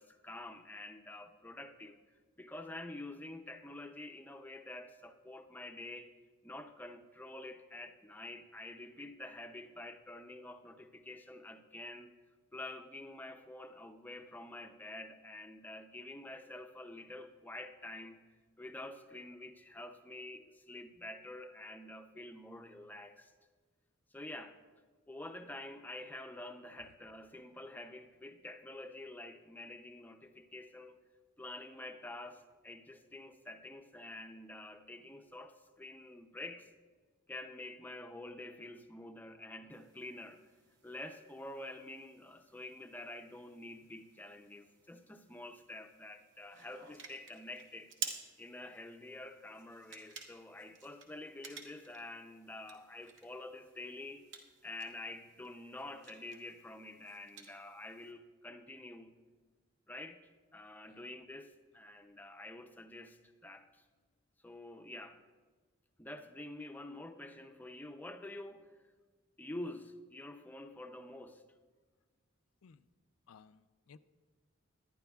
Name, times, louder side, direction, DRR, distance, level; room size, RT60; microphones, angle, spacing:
voice 1, 0.0-2.0 2.4-6.1 6.4-12.1 12.5-18.2 18.6-23.3 24.1-24.6 25.1-30.9 31.4-36.7 37.3-40.4 40.8-47.9 48.4-54.3 54.6-59.2 59.9-63.8 64.4-65.2 66.0-68.7 69.4-71.4, left 2 dB, 10° left, 7 dB, 0.5 m, -48 dB
sound 1, 39.7-58.1, right 6 dB, 60° right, 1.2 m, -52 dB
voice 2, 73.3-74.0, left 6 dB, 85° left, 13 dB, 0.4 m, -59 dB
19.0 x 11.5 x 2.3 m, 1.4 s
head